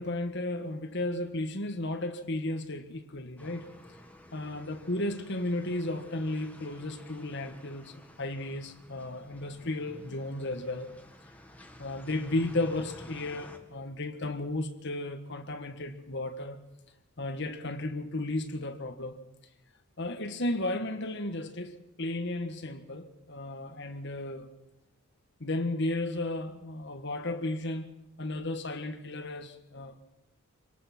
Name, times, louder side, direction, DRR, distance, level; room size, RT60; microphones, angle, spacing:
voice 1, 0.0-3.7 4.3-10.9 11.8-16.6 17.2-19.2 20.0-24.5 25.4-27.8 28.2-30.0, left 2 dB, 50° left, 1.6 m, -34 dB
sound 1, 3.4-13.6, left 1 dB, 5° left, 1.9 m, -52 dB
25.5 x 19.0 x 6.1 m
head